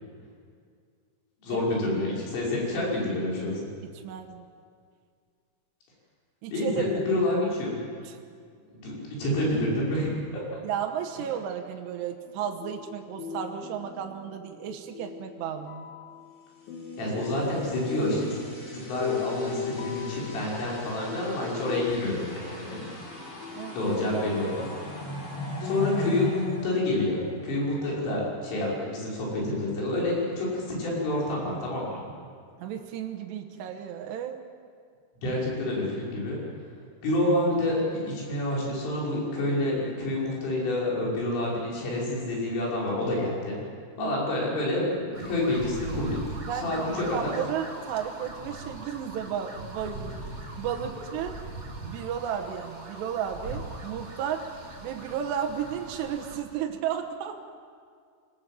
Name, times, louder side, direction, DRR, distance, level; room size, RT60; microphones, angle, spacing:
voice 1, 1.4-3.7 6.5-7.8 8.7-10.4 17.0-22.9 23.7-24.7 25.6-32.0 35.2-36.4 37.0-43.6 44.0-47.3, left 1 dB, 85° left, -4 dB, 8.3 m, -28 dB
voice 2, 4.0-4.5 6.4-7.0 8.0-8.2 10.6-15.9 23.5-23.8 32.6-34.4 44.0-44.2 46.4-50.2 50.6-51.4 51.8-54.5 54.8-57.3, right 9 dB, 75° right, 4 dB, 3.0 m, -33 dB
sound 1, 12.3-24.2 25.1-25.2 25.6-28.6, left 6 dB, 55° left, 3.2 m, -40 dB
sound 2, 17.0-27.7, left 2 dB, 30° left, 5.8 m, -39 dB
sound 3, 45.1-56.4, right 2 dB, 50° right, 0.7 m, -40 dB
25.0 x 19.5 x 7.7 m, 2.1 s
omnidirectional pair, 5.6 m